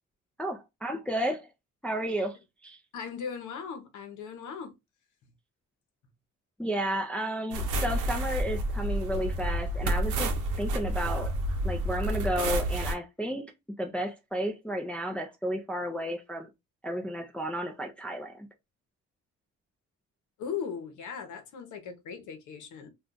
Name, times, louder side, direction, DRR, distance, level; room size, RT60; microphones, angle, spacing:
voice 1, 0.4-1.5 1.8-2.4 2.6-2.8 6.6-11.3 11.6-16.5 16.8-18.5, equal, 5° left, 0.5 m, -32 dB
voice 2, 2.9-4.7 20.4-22.9, left 7 dB, 75° left, 0.9 m, -38 dB
sound 1, 7.5-12.9, right 1 dB, 80° right, 0.7 m, -29 dB
2.4 x 2.3 x 3.7 m
cardioid pair, 90°, 30 cm